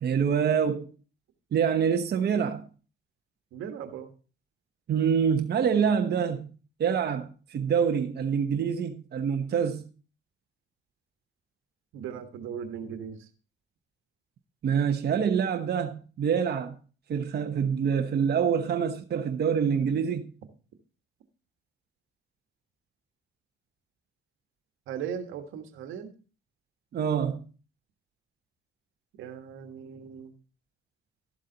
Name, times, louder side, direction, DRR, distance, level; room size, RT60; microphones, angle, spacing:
voice 1, 0.0-0.9 1.5-2.6 4.9-6.5 6.8-9.9 14.6-16.8 17.1-20.3 26.9-27.4, right 7 dB, 55° right, 1.0 m, -26 dB
voice 2, 3.5-4.1 11.9-13.3 24.9-26.1 29.2-30.3, right 8 dB, 85° right, 1.4 m, -38 dB
12.5 x 7.4 x 3.9 m
cardioid pair, 90°, 20 cm